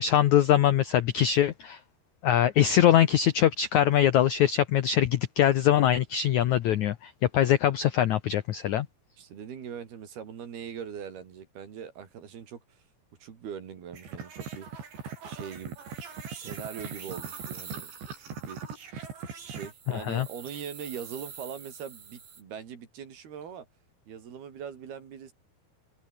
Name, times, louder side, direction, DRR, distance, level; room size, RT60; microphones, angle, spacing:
voice 1, 0.0-1.8 2.2-8.9 19.9-20.3, left 11 dB, 85° left, 1.6 m, -23 dB
voice 2, 9.2-12.8 13.2-14.8 15.2-15.8 16.3-17.9 18.2-18.6 19.4-23.7 24.1-25.3, right 8 dB, 65° right, 5.1 m, -41 dB
sound 1, 13.9-19.7, right 6 dB, 90° right, 7.9 m, -40 dB
sound 2, 14.7-18.7 19.4-22.4, right 7 dB, 45° right, 4.4 m, -47 dB
omnidirectional pair, 4.9 m